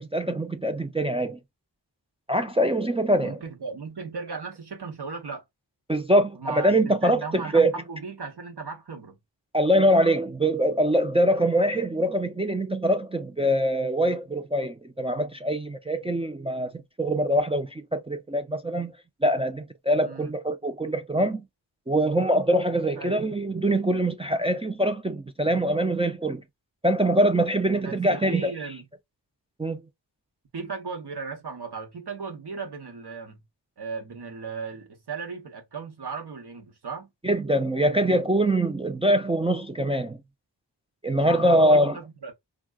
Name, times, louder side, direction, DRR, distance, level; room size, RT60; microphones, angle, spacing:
voice 1, 0.0-1.4 2.3-3.4 5.9-7.7 9.5-16.7 17.0-18.9 19.2-21.4 21.9-26.4 26.8-28.5 29.6-29.8 37.2-40.2 41.0-41.9, right 1 dB, 15° right, 0.3 m, -23 dB
voice 2, 3.2-5.4 6.3-9.2 11.3-11.5 20.0-20.3 23.0-23.2 27.7-28.8 30.5-33.4 33.8-37.1 41.2-42.3, right 5 dB, 60° right, 1.0 m, -37 dB
3.7 x 2.3 x 2.3 m
cardioid pair, 40°, 45 cm